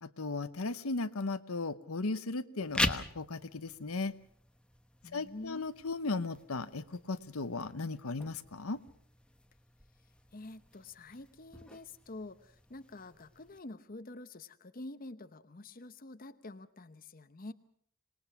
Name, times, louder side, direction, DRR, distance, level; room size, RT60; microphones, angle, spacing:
voice 1, 0.0-4.1 5.1-8.8, left 3 dB, 85° left, 11 dB, 1.0 m, -36 dB
sound 1, 2.6-13.6, left 1 dB, 5° left, 1.1 m, -42 dB
voice 2, 5.0-5.6 10.3-17.5, left 2 dB, 40° left, 11 dB, 0.9 m, -47 dB
26.5 x 20.0 x 6.0 m, 0.62 s
head